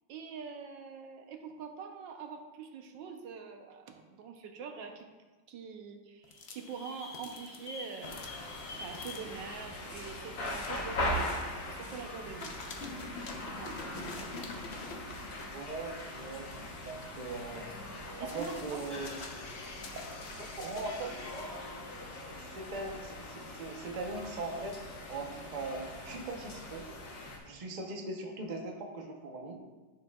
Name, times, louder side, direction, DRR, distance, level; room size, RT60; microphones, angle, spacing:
voice 1, 0.1-5.1 5.5-8.2 8.8-11.4 11.7-12.7 13.4-14.4 18.2-18.9, right 6 dB, 85° right, 5 dB, 1.5 m, -44 dB
sound 1, 6.2-12.1 12.4-21.6, left 3 dB, 50° left, 0.8 m, -47 dB
sound 2, 8.0-27.4, left 1 dB, 75° left, 1.8 m, -41 dB
voice 2, 15.5-17.7 18.2-19.2 19.9-20.0 20.3-21.2 22.5-24.8 25.1-26.9 27.4-29.6, right 2 dB, 35° right, 1 dB, 0.7 m, -40 dB
10.5 x 6.8 x 2.3 m, 1.2 s
omnidirectional pair, 1.9 m